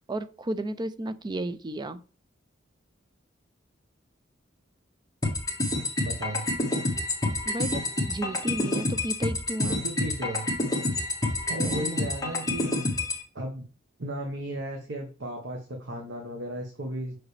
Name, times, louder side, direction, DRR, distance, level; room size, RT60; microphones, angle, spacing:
voice 1, 0.0-2.0 7.5-9.8 11.6-12.1, right 1 dB, 25° right, 0.4 m, -33 dB
sound 1, 5.2-13.2, left 2 dB, 20° left, 1.6 m, -28 dB
voice 2, 6.0-6.4 9.8-10.5 11.5-12.9 13.3-13.7 14.0-17.2, right 1 dB, 70° right, 1.2 m, -35 dB
6.2 x 4.9 x 3.3 m
head